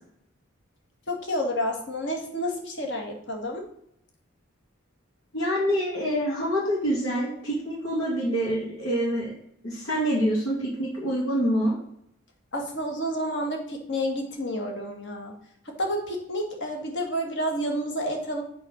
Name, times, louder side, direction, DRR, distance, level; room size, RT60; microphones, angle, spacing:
voice 1, 1.1-3.6 12.5-15.3 15.7-18.4, equal, 60° left, 2 dB, 2.1 m, -30 dB
voice 2, 5.3-9.3 9.6-11.8, equal, 85° left, -9 dB, 3.5 m, -26 dB
8.3 x 4.4 x 6.5 m, 0.72 s
head